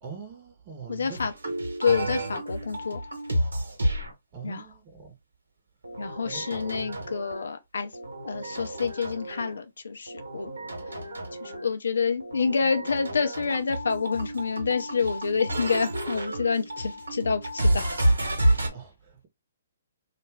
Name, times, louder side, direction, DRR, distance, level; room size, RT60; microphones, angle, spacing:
voice 1, 0.0-1.2 4.3-5.1 6.2-7.1 18.7-19.3, right 5 dB, 35° right, 0.9 m, -43 dB
voice 2, 0.9-1.3 1.8-3.0 4.4-4.7 6.0-7.9 8.3-10.5 10.9-11.0 11.4-17.9, left 5 dB, 70° left, 0.6 m, -28 dB
sound 1, 1.1-4.1 5.8-7.5 7.9-9.6 10.1-11.7 12.2-18.7, right 1 dB, 85° right, 1.0 m, -30 dB
2.5 x 2.2 x 3.3 m
figure-of-eight pair, 130°, 0 cm